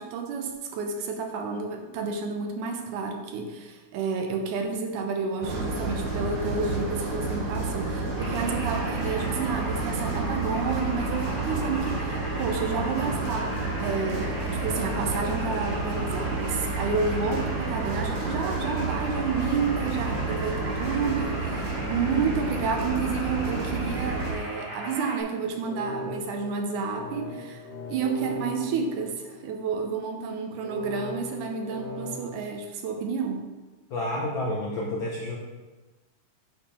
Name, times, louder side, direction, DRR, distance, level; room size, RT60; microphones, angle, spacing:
voice 1, 0.0-33.5, right 5 dB, 85° right, 4 dB, 2.5 m, -30 dB
sound 1, 5.4-24.3, right 3 dB, 55° right, 2.2 m, -30 dB
sound 2, 8.2-25.2, right 1 dB, 40° right, 3.6 m, -38 dB
sound 3, 25.4-29.7 30.6-32.4, left 2 dB, 45° left, 1.5 m, -39 dB
voice 2, 33.9-35.4, left 1 dB, 70° left, -3 dB, 1.1 m, -29 dB
8.4 x 5.5 x 4.3 m, 1.2 s
omnidirectional pair, 3.5 m